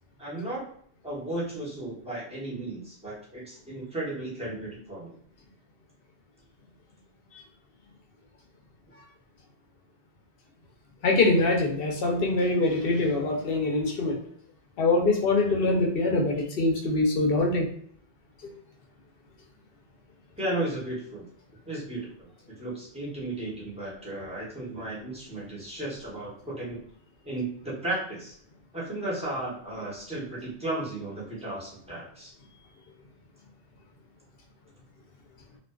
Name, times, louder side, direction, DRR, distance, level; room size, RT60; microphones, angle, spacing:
voice 1, 0.2-0.6 1.0-5.1 20.4-21.3 21.7-26.8 27.2-28.3 28.7-32.3, right 1 dB, 5° right, -7 dB, 0.8 m, -34 dB
voice 2, 11.0-14.2 14.8-17.7 18.4-18.5, left 2 dB, 60° left, 0 dB, 0.8 m, -24 dB
2.5 x 2.3 x 2.2 m, 0.62 s
omnidirectional pair, 1.2 m